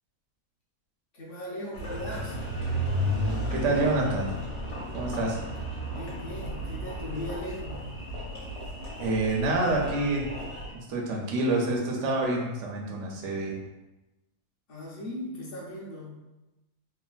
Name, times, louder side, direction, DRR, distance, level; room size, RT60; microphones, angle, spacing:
voice 1, 1.1-2.4 5.9-7.8 14.7-16.1, left 1 dB, 45° left, -6 dB, 0.8 m, -38 dB
Engine, 1.7-10.7, equal, 85° left, 1.4 m, -33 dB
voice 2, 3.5-4.3 4.9-5.4 9.0-10.3 10.7-13.6, right 2 dB, 70° right, -1 dB, 0.7 m, -27 dB
3.2 x 2.1 x 2.4 m, 1.0 s
omnidirectional pair, 1.7 m